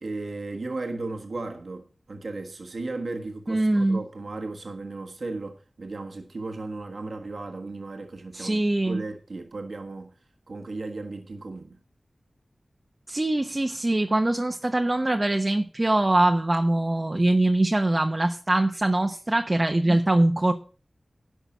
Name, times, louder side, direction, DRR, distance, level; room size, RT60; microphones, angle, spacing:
voice 1, 0.0-10.1 10.5-11.8, right 3 dB, 75° right, 1.5 m, -35 dB
voice 2, 3.5-4.0 8.3-9.0 13.1-20.5, right 1 dB, 35° right, 1.1 m, -23 dB
11.5 x 6.0 x 7.2 m
wide cardioid pair, 60°, 0 cm